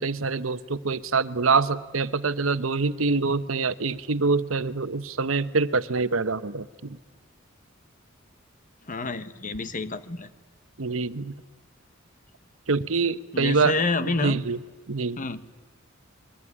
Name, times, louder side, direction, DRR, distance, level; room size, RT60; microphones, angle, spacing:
voice 1, 0.0-7.0 10.8-11.3 12.7-13.7 14.2-14.6 14.9-15.2, right 4 dB, 85° right, 13 dB, 1.0 m, -25 dB
voice 2, 8.9-10.3 13.3-14.4 15.2-15.4, left 3 dB, 40° left, 13 dB, 1.2 m, -28 dB
26.0 x 22.5 x 9.9 m, 1.2 s
head